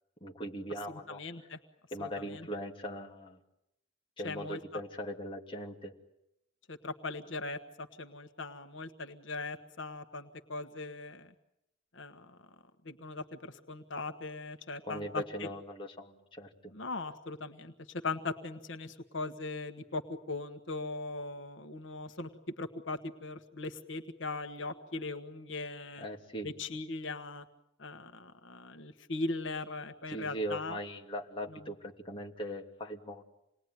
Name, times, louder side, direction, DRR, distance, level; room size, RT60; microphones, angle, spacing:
voice 1, 0.2-1.2 1.9-3.4 4.2-5.9 14.9-16.7 26.0-26.5 30.1-33.2, equal, 30° left, 0 dB, 2.8 m, -40 dB
voice 2, 1.1-1.6 2.0-2.5 4.2-4.8 6.7-11.3 11.9-12.4 12.8-15.5 16.7-20.0 20.3-22.3 22.6-26.1 26.4-27.4 27.8-30.8 31.5-31.6, left 3 dB, 80° left, 7 dB, 1.5 m, -39 dB
28.0 x 20.5 x 9.6 m, 0.84 s
head